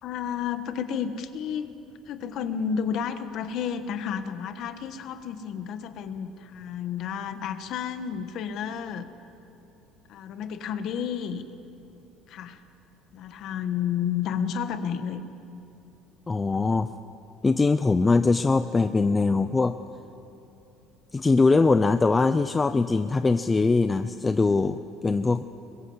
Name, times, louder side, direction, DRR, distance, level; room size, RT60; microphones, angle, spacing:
voice 1, 0.0-9.1 10.1-11.5 12.3-12.6 13.1-15.3, left 8 dB, 45° left, 9 dB, 1.3 m, -31 dB
voice 2, 16.3-16.9 17.4-19.8 21.1-25.4, left 3 dB, 15° left, 10 dB, 0.4 m, -22 dB
22.0 x 21.5 x 8.0 m, 2.8 s
cardioid pair, 170°, 0 cm